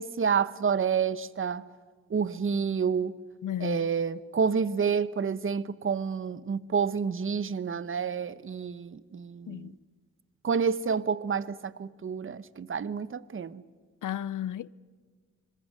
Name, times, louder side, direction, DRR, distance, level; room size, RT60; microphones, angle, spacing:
voice 1, 0.0-1.6 2.1-3.1 3.6-9.7 10.4-13.6, right 6 dB, 40° right, 0.8 m, -29 dB
voice 2, 3.4-3.8 9.5-9.8 14.0-14.7, left 11 dB, 80° left, 0.6 m, -33 dB
26.0 x 21.5 x 6.6 m
cardioid pair, 65°, 31 cm